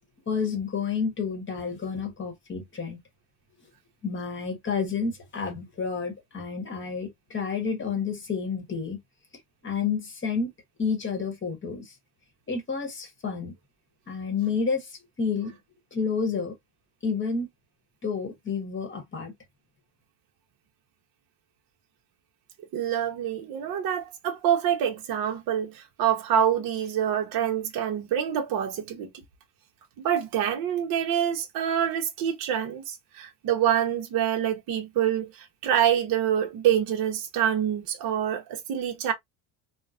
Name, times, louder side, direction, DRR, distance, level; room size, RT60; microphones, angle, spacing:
voice 1, 0.3-3.0 4.0-9.0 9.6-10.5 10.8-11.9 12.5-13.5 14.1-15.6 15.9-16.5 17.0-17.5 18.0-19.3, left 5 dB, 25° left, 1.0 m, -30 dB
voice 2, 22.7-29.1 30.0-39.1, right 9 dB, 50° right, 0.7 m, -26 dB
3.0 x 2.1 x 2.4 m
supercardioid pair, 115°, 48 cm